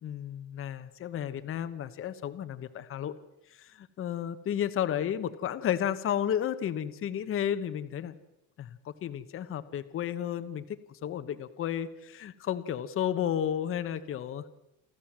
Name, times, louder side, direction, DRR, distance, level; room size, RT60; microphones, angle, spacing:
voice 1, 0.0-3.2 3.5-8.1 8.6-14.5, left 10 dB, 40° left, 11 dB, 1.2 m, -32 dB
29.5 x 12.5 x 7.5 m, 0.92 s
cardioid pair, 135°, 33 cm